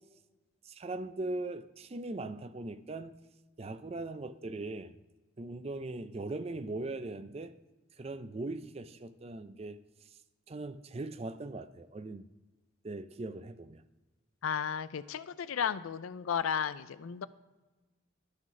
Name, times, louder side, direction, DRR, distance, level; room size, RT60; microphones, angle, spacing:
voice 1, 0.6-3.1 3.6-5.0 5.4-7.5 8.0-10.1 10.5-12.2 12.8-13.8, right 2 dB, 30° right, 12 dB, 0.4 m, -40 dB
voice 2, 14.4-17.3, left 7 dB, 90° left, 16 dB, 0.4 m, -34 dB
11.5 x 3.9 x 6.0 m, 1.2 s
head